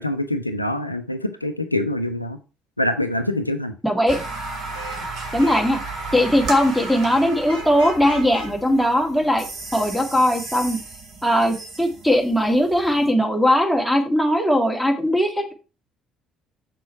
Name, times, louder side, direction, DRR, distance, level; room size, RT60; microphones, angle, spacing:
voice 1, 0.0-2.4 2.8-3.7, left 1 dB, 85° left, 9 dB, 0.5 m, -25 dB
voice 2, 3.8-4.2 5.3-5.8 6.1-9.5 9.7-10.8 11.2-15.5, equal, 5° right, 3 dB, 2.2 m, -19 dB
sound 1, 4.1-13.1, right 3 dB, 50° right, 2.9 m, -34 dB
Vehicle horn car horn honking / Traffic noise roadway noise, 4.5-9.8, right 1 dB, 90° right, 3.1 m, -40 dB
6.9 x 6.1 x 4.5 m, 0.33 s
figure-of-eight pair, 50°, 0 cm